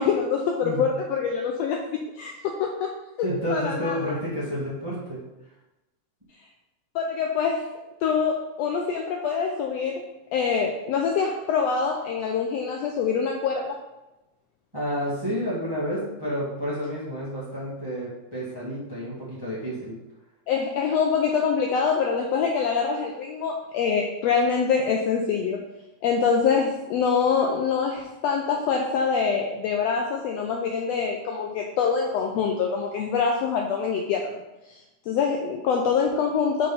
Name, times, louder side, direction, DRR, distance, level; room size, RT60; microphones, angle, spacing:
voice 1, 0.0-2.9 3.2-4.1 6.9-7.6 8.0-10.0 10.3-13.8 20.5-25.6 26.0-34.4 34.7-36.7, left 6 dB, 80° left, 1 dB, 1.5 m, -25 dB
voice 2, 3.2-5.2 14.7-20.0, equal, 10° right, -8 dB, 1.4 m, -30 dB
5.2 x 4.3 x 5.4 m, 0.98 s
omnidirectional pair, 3.4 m